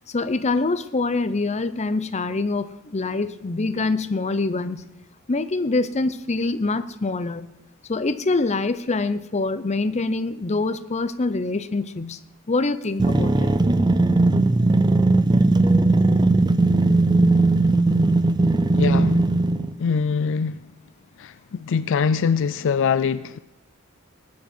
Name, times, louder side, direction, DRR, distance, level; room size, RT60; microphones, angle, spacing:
voice 1, 0.1-4.8 5.3-7.5 7.9-12.2 12.5-13.5, left 3 dB, 30° left, 0.7 m, -25 dB
sound 1, 13.0-19.7, right 2 dB, 20° right, 0.5 m, -18 dB
voice 2, 18.7-19.2 19.8-20.5 21.6-23.4, left 6 dB, 60° left, 0.4 m, -22 dB
19.0 x 9.5 x 4.5 m
head